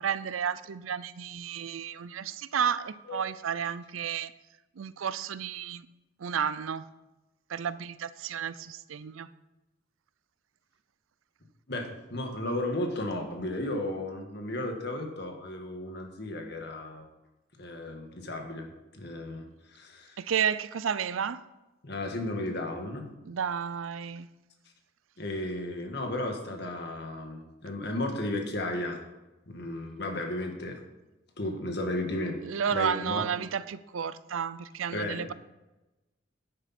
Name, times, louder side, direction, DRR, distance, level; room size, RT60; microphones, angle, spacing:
voice 1, 0.0-4.3 4.8-5.9 6.2-6.9 7.5-9.3 20.2-21.4 23.2-24.3 32.4-35.3, right 7 dB, 90° right, 16 dB, 0.5 m, -32 dB
voice 2, 11.7-17.0 17.6-20.2 21.8-23.0 25.2-29.0 29.5-30.8 31.4-32.4 32.7-33.2 34.9-35.2, left 1 dB, 55° left, 3 dB, 1.7 m, -34 dB
10.0 x 9.9 x 4.3 m, 1.0 s
head